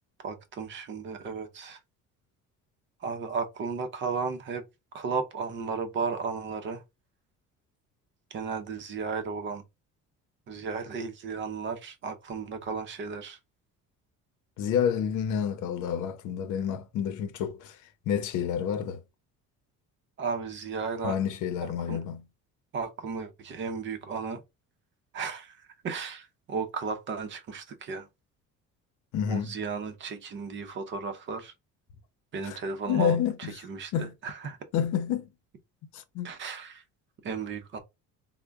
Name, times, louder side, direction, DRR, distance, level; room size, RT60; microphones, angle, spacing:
voice 1, 0.2-1.8 3.0-4.6 4.9-6.8 8.3-9.6 10.5-13.4 20.2-21.2 21.6-22.0 22.7-24.4 25.1-28.1 29.3-31.5 32.3-34.6 36.2-36.8 37.2-37.8, right 5 dB, 40° right, 0.7 m, -34 dB
voice 2, 14.6-17.8 18.1-19.0 21.0-22.2 29.1-29.5 32.4-32.6 32.9-33.5 33.9-34.1 34.7-35.3 35.9-36.3, left 8 dB, 75° left, 0.7 m, -29 dB
3.6 x 2.2 x 3.4 m
cardioid pair, 160°, 30 cm